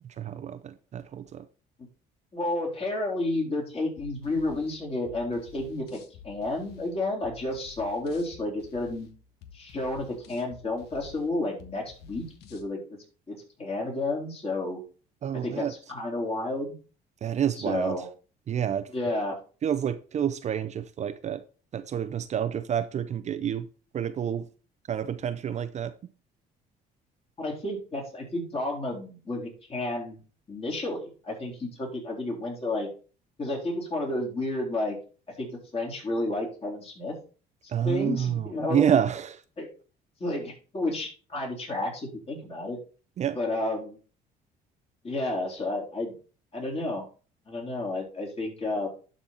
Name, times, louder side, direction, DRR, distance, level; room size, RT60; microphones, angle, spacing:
voice 1, 0.0-1.5 15.2-15.7 17.2-18.0 18.5-18.9 19.6-21.4 21.7-23.7 23.9-24.5 24.9-26.1 37.7-39.4 43.2-43.4, right 9 dB, 45° right, 0.5 m, -28 dB
voice 2, 2.3-9.1 9.5-12.8 13.3-14.8 15.3-16.7 17.6-18.1 18.9-19.4 27.4-30.2 30.5-32.9 33.4-35.0 35.4-37.2 37.8-38.8 39.6-39.7 40.2-42.8 43.4-44.0 45.0-46.1 46.5-47.0 47.5-48.9, left 2 dB, 35° left, 3.8 m, -31 dB
sound 1, 4.0-12.7, left 8 dB, 80° left, 1.1 m, -51 dB
11.5 x 4.1 x 4.2 m
cardioid pair, 110°, 17 cm